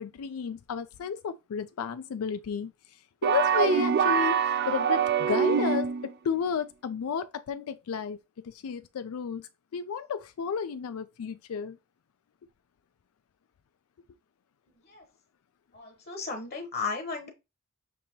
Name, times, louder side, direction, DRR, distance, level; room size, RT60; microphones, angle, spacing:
voice 1, 0.0-8.2 8.4-11.8, left 7 dB, 90° left, 0.4 m, -33 dB
sound 1, 3.2-6.1, right 7 dB, 50° right, 0.3 m, -24 dB
voice 2, 15.7-17.3, left 4 dB, 50° left, 1.0 m, -35 dB
6.6 x 2.8 x 2.8 m
head